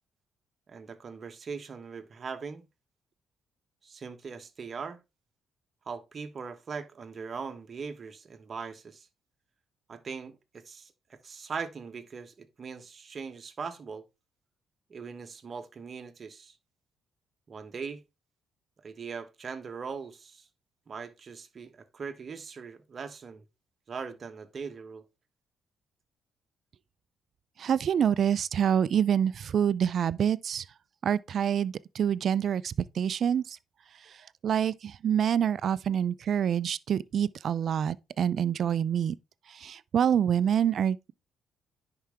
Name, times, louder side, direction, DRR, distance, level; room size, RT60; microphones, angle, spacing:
voice 1, 0.7-2.7 3.8-5.0 5.8-9.1 9.9-14.0 14.9-16.6 17.5-18.0 18.8-20.5 20.9-23.4 23.9-25.0, right 5 dB, 45° right, 1.3 m, -40 dB
voice 2, 27.6-30.7 31.0-33.6 34.1-34.2 34.4-39.2 39.5-41.0, right 8 dB, 60° right, 0.4 m, -26 dB
10.5 x 4.8 x 3.5 m
cardioid pair, 90°, 0 cm